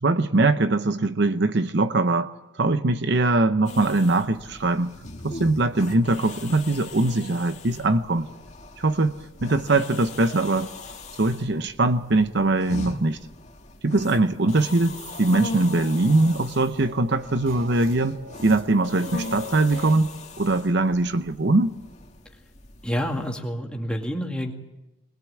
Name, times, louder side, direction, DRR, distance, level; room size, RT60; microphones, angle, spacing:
voice 1, 0.0-4.9 5.2-8.3 8.8-10.7 11.2-13.2 13.8-20.1 20.4-21.7, right 2 dB, 55° right, 11 dB, 0.8 m, -22 dB
sound 1, 3.7-23.3, left 3 dB, 35° left, 2.0 m, -40 dB
sound 2, 14.9-20.0, left 1 dB, 70° right, 2.6 m, -43 dB
voice 2, 22.8-24.5, equal, 5° left, 2 dB, 2.1 m, -28 dB
21.5 x 21.0 x 8.5 m, 0.99 s
head